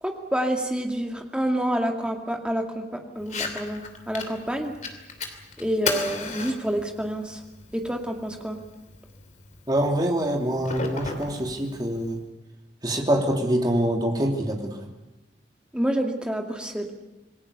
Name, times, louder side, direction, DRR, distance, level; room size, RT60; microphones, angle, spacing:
voice 1, 0.0-4.7 5.6-7.4 7.7-8.6 15.7-16.9, right 1 dB, 5° right, 2 dB, 2.3 m, -28 dB
Fire, 3.2-12.2, left 4 dB, 40° left, 2.8 m, -36 dB
voice 2, 9.7-12.2 12.8-14.8, right 1 dB, 20° right, 2 dB, 3.0 m, -25 dB
27.5 x 20.0 x 6.8 m, 1.0 s
head